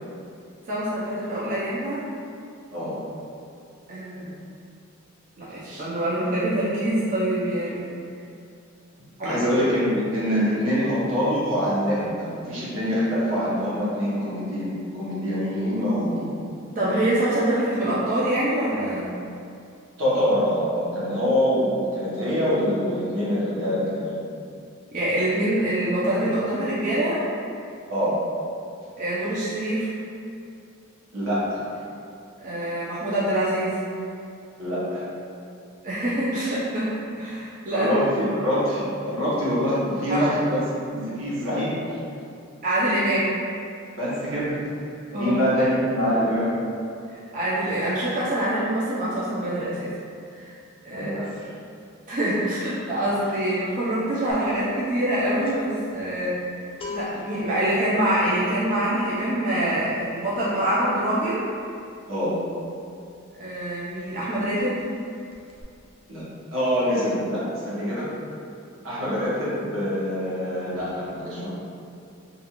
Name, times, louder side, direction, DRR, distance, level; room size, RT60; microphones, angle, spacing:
voice 1, 0.7-2.0 3.9-4.3 5.4-7.9 9.2-9.4 16.8-19.1 24.9-27.2 29.0-29.9 32.4-33.8 35.8-36.9 37.2-37.9 40.1-40.3 42.6-43.3 45.1-45.4 47.1-49.9 50.3-50.5 50.8-51.2 52.1-56.4 56.9-61.5 63.3-64.8, right 1 dB, 40° right, -9 dB, 0.4 m, -25 dB
voice 2, 9.2-16.3 20.0-24.2 27.9-28.2 31.1-31.6 34.6-35.0 37.7-40.6 40.9-41.8 43.9-44.6 45.1-46.5 50.9-51.5 62.1-62.4 66.1-66.2 66.5-68.1 68.8-71.5, equal, 80° right, -9 dB, 0.9 m, -25 dB
sound 1, 54.3-54.6 54.8-63.4 63.7-65.0 65.3-65.6, left 5 dB, 25° left, 0.3 m, -42 dB
2.4 x 2.3 x 2.9 m, 2.5 s
head